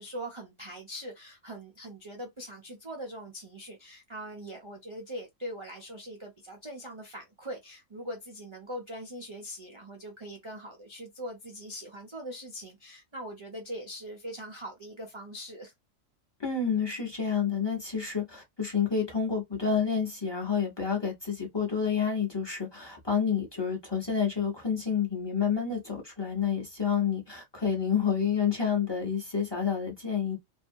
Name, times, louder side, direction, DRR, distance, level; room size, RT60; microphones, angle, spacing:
voice 1, 0.0-15.7, equal, 50° right, 0.3 m, -41 dB
voice 2, 16.4-30.4, left 6 dB, 25° left, 0.7 m, -29 dB
2.7 x 2.3 x 2.6 m
omnidirectional pair, 1.5 m